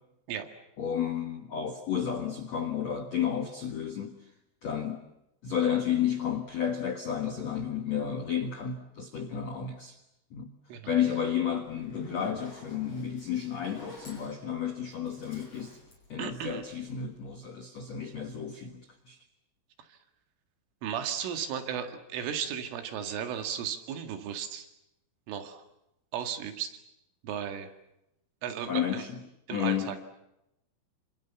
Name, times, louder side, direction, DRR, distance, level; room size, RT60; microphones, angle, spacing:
voice 1, 0.8-4.1 4.6-5.0 5.4-10.0 10.3-10.5 10.9-15.8 16.1-19.2 28.7-29.2 29.5-30.0, left 8 dB, 85° left, 6 dB, 1.5 m, -32 dB
Zipper (clothing), 11.6-16.9, left 2 dB, 30° left, 6.8 m, -47 dB
voice 2, 16.2-16.6 19.8-20.0 20.8-24.7 25.3-25.6 26.1-26.8 27.2-27.7 28.4-29.0 29.5-30.0, right 8 dB, 75° right, 6 dB, 4.5 m, -35 dB
27.5 x 26.5 x 7.2 m, 0.87 s
omnidirectional pair, 5.8 m